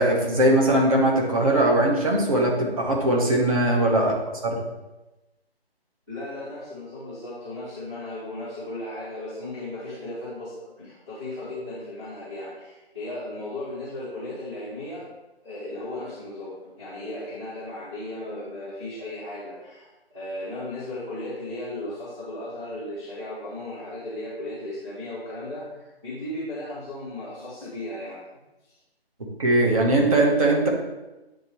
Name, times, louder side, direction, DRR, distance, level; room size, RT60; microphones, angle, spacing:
voice 1, 0.0-4.1 4.4-4.6 29.4-30.7, right 1 dB, 35° right, -2 dB, 1.2 m, -20 dB
voice 2, 6.1-15.1 15.4-28.3 28.6-28.8, left 1 dB, 5° right, -18 dB, 0.7 m, -36 dB
8.9 x 3.0 x 4.5 m, 1.0 s
figure-of-eight pair, 155°, 31 cm